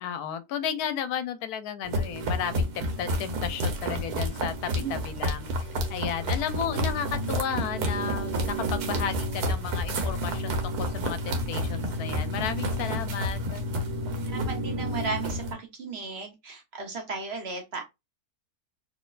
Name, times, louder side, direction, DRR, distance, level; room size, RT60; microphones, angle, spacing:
voice 1, 0.0-2.7 3.0-5.5 5.9-13.6, left 8 dB, 80° left, 1.1 m, -33 dB
sound 1, 1.8-15.5, equal, 85° right, 1.5 m, -30 dB
voice 2, 6.3-6.8 14.2-17.8, right 4 dB, 50° right, 1.0 m, -36 dB
4.2 x 3.2 x 2.4 m
omnidirectional pair, 1.6 m